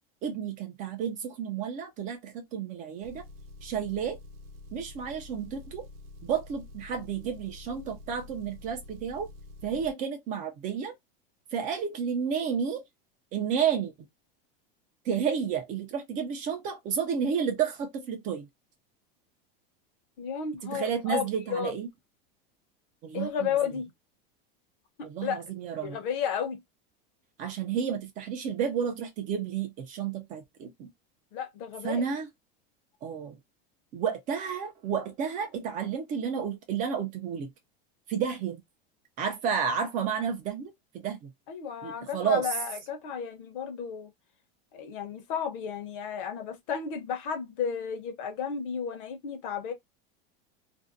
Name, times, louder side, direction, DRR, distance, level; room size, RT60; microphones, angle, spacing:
voice 1, 0.2-3.2 3.6-4.2 4.7-5.8 6.2-9.3 9.6-10.9 11.5-12.8 13.3-13.9 15.0-18.5 20.6-21.9 23.0-23.5 25.0-26.0 27.4-30.9 31.8-32.3 33.0-33.4 33.9-37.5 38.1-38.6 39.2-41.3 41.8-42.4, right 7 dB, 25° right, 0.4 m, -31 dB
Engine, 3.0-9.9, left 2 dB, 80° right, 0.6 m, -48 dB
voice 2, 20.2-21.8 23.1-23.9 25.2-25.4 25.8-26.6 31.3-32.0 41.5-44.1 44.7-49.7, left 7 dB, 60° left, 0.8 m, -33 dB
2.5 x 2.1 x 2.4 m
supercardioid pair, 155°, 29 cm